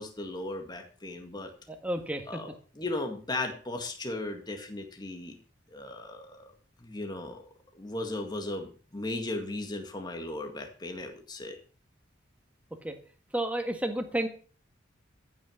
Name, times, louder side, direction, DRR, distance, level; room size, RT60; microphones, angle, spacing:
voice 1, 0.0-1.5 2.3-5.4 5.7-6.5 6.8-7.4 7.7-11.6, left 2 dB, 20° left, 4 dB, 1.8 m, -36 dB
voice 2, 1.7-2.4 12.8-12.9 13.3-14.3, right 1 dB, 5° right, 5 dB, 1.7 m, -31 dB
14.5 x 6.4 x 7.1 m, 0.42 s
head